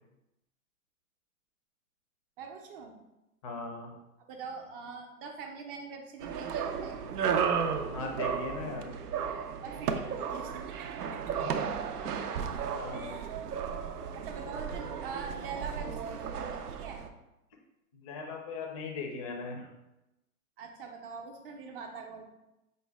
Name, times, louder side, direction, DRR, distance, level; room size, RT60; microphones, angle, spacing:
voice 1, 2.4-2.9 4.3-7.0 9.6-11.5 12.9-13.4 13.8-17.0 20.6-22.2, right 5 dB, 40° right, 3 dB, 0.6 m, -43 dB
voice 2, 3.4-3.9 7.9-8.9 11.4-11.6 12.0-12.2 12.7-13.2 17.9-19.7, left 4 dB, 25° left, 2 dB, 0.4 m, -39 dB
sound 1, 6.2-17.1, right 7 dB, 85° right, 0.6 m, -34 dB
5.1 x 2.2 x 3.4 m, 0.93 s
hypercardioid pair, 135°, 45 cm